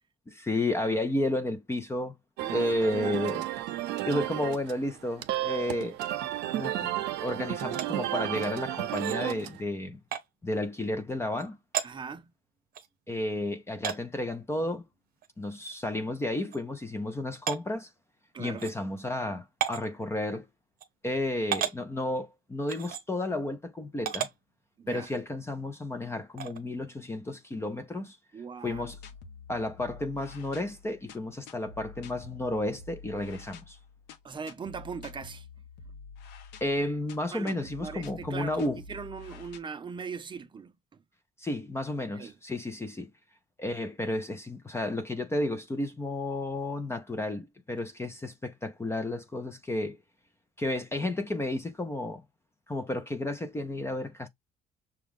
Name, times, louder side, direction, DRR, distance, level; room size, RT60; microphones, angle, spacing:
voice 1, 0.3-2.1 2.5-3.4 4.0-6.0 6.5-6.9 7.2-10.0 10.4-11.6 13.1-14.8 15.4-17.9 18.4-20.5 21.0-24.3 24.9-28.2 28.6-29.0 29.5-33.8 36.6-38.8 41.4-43.1 43.6-50.0 50.6-52.2 52.7-54.3, left 1 dB, 15° left, 0.6 m, -32 dB
sound 1, 2.4-9.6, right 14 dB, 85° right, 0.6 m, -33 dB
sound 2, 7.7-7.9 8.9-9.2 10.1-10.2 11.4-11.5 11.7-11.9 12.7-12.9 13.8-14.0 15.2-15.3 15.7-15.8 16.5-16.6 17.5-17.6 18.6-18.7 19.6-19.9 20.8-20.9 21.5-21.8 22.7-23.0 24.0-24.3 25.0-25.2 26.4-26.6, right 9 dB, 60° right, 0.9 m, -32 dB
voice 2, 11.8-12.3 18.3-18.7 24.8-25.1 28.3-28.8 34.2-35.5 37.3-41.0 42.1-42.4, right 5 dB, 30° right, 0.6 m, -40 dB
sound 3, 28.6-39.6, left 5 dB, 85° left, 0.9 m, -48 dB
6.0 x 2.3 x 3.6 m
cardioid pair, 110°, 17 cm